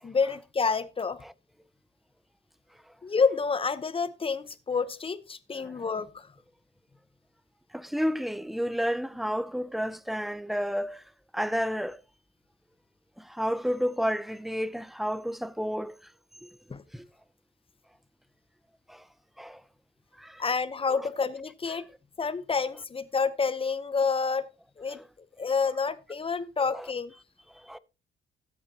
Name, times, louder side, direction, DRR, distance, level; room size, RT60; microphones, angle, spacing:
voice 1, 0.0-1.2 3.0-6.3 16.7-16.8 20.4-21.8 22.2-24.5 24.8-25.0 25.4-27.1, left 5 dB, 25° left, 0.8 m, -28 dB
voice 2, 5.5-5.8 7.7-11.0 11.3-12.0 13.2-16.1 16.4-16.5 16.9-17.1 18.9-19.1 19.4-19.6 20.2-20.4 20.9-21.0 24.9-25.1 26.7-26.9 27.5-27.8, equal, ahead, 0.5 m, -31 dB
13.5 x 8.3 x 2.8 m
cardioid pair, 90°, 20 cm